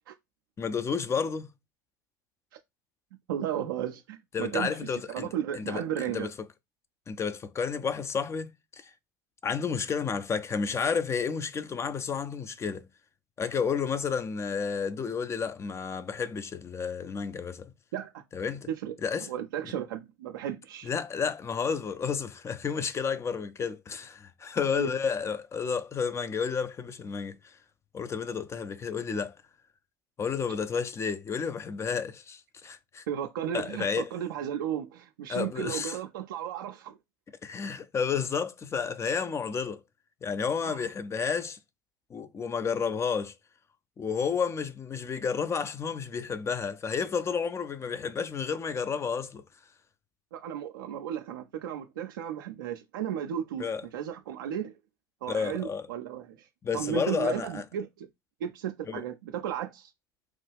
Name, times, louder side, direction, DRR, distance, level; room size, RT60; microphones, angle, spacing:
voice 1, 0.6-1.5 4.3-6.5 7.1-8.9 9.4-12.9 13.4-17.7 18.3-18.7 19.0-19.3 20.8-27.5 27.9-29.3 30.2-33.0 33.5-34.1 35.3-36.0 37.4-39.8 40.2-41.6 42.1-43.3 44.0-49.4 53.6-53.9 55.3-55.9 56.6-57.6 58.9-59.0, left 6 dB, 25° left, 0.4 m, -31 dB
voice 2, 3.3-6.3 17.9-18.2 18.8-18.9 19.3-20.9 24.7-24.9 33.1-37.0 40.6-40.9 50.3-54.7 55.2-56.5 56.7-58.1 58.4-59.9, right 10 dB, 80° right, 0.4 m, -34 dB
3.0 x 2.2 x 3.3 m
hypercardioid pair, 80°, 11 cm